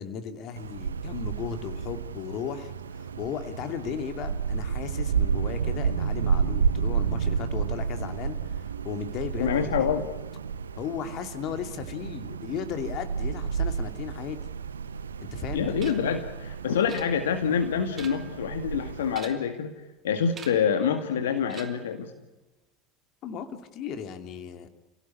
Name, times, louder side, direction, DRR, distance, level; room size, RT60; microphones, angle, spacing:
voice 1, 0.0-9.9 10.8-14.4 15.2-15.7 23.2-24.7, left 8 dB, 45° left, 8 dB, 2.6 m, -36 dB
Wind, 0.6-19.1, right 6 dB, 75° right, 0.8 m, -31 dB
voice 2, 9.4-10.0 15.5-19.8 20.0-22.1, left 7 dB, 65° left, 6 dB, 2.0 m, -26 dB
sound 1, 15.8-16.2 16.9-17.5 17.8-18.4 19.1-19.6 20.3-20.8 21.5-22.0, right 6 dB, 30° right, 3.2 m, -45 dB
30.0 x 17.5 x 9.7 m, 1.1 s
figure-of-eight pair, 75°, 0 cm